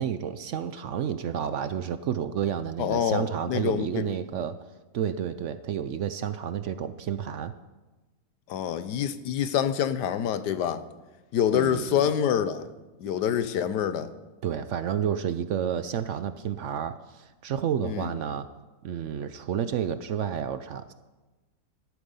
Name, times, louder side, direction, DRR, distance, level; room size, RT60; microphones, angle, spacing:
voice 1, 0.0-4.6 4.9-7.5 11.5-12.0 14.4-18.5 18.8-20.9, right 9 dB, 70° right, 12 dB, 0.7 m, -30 dB
voice 2, 2.8-4.1 8.5-10.9 11.3-12.7 13.0-14.1 17.8-18.1, left 9 dB, 85° left, 13 dB, 1.3 m, -26 dB
13.0 x 11.5 x 5.4 m, 1.2 s
omnidirectional pair, 1.8 m